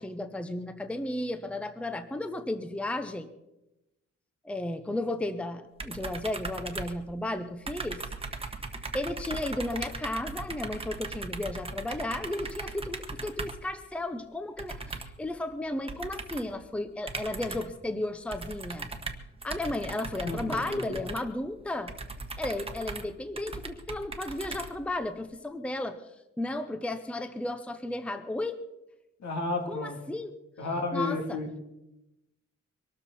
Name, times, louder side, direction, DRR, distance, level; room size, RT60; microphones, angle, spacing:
voice 1, 0.0-3.3 4.4-8.1 8.9-18.9 19.4-21.9 22.4-26.0 26.4-28.6 29.7-30.3 30.9-31.4, left 1 dB, 5° left, 9 dB, 0.7 m, -34 dB
sound 1, 5.8-7.4 7.7-13.7 14.6-15.3 15.9-16.6 17.1-17.8 18.3-25.1, right 3 dB, 20° right, 1.2 m, -39 dB
voice 2, 20.2-21.0 29.2-30.0 30.6-31.6, left 2 dB, 70° left, 2 dB, 3.2 m, -32 dB
23.5 x 13.0 x 4.3 m, 0.94 s
wide cardioid pair, 155°, 29 cm